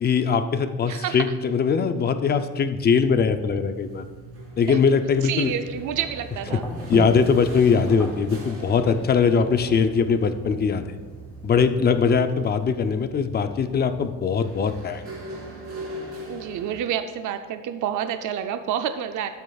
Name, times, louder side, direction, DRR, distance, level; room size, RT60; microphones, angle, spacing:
voice 1, 0.0-4.0 4.6-5.5 6.9-11.0 11.4-15.1, left 5 dB, 30° left, 9 dB, 0.4 m, -21 dB
voice 2, 0.9-1.3 4.7-4.8 5.2-6.6 9.3-9.4 16.3-19.3, right 9 dB, 70° right, 8 dB, 0.5 m, -29 dB
sound 1, 2.8-16.9, right 1 dB, 45° right, 2.8 m, -42 dB
sound 2, 5.5-12.6, equal, 5° left, 1.9 m, -39 dB
13.0 x 8.4 x 2.3 m, 1.4 s
cardioid pair, 160°, 32 cm